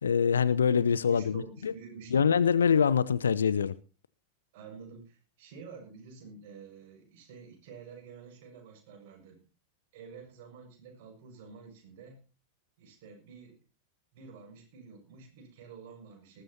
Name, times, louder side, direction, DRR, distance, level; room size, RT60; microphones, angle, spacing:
voice 1, 0.0-1.7 2.1-3.7, left 7 dB, 70° left, 0.8 m, -24 dB
voice 2, 1.0-2.4 4.5-9.4 9.9-12.2 12.8-13.6 14.1-16.4, right 5 dB, 50° right, 6.5 m, -49 dB
19.5 x 14.5 x 2.9 m
figure-of-eight pair, 90°, 0 cm